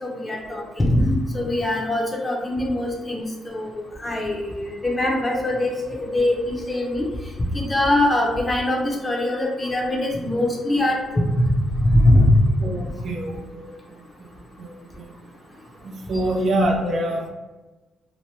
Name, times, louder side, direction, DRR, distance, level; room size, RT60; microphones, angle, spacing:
voice 1, 0.0-7.1 7.5-12.4 16.8-16.9, left 1 dB, 20° left, -1 dB, 0.7 m, -22 dB
voice 2, 12.6-14.0 14.6-15.1 15.8-17.3, right 1 dB, 55° right, 1 dB, 0.5 m, -26 dB
2.9 x 2.1 x 3.2 m, 1.1 s
cardioid pair, 90°, 0 cm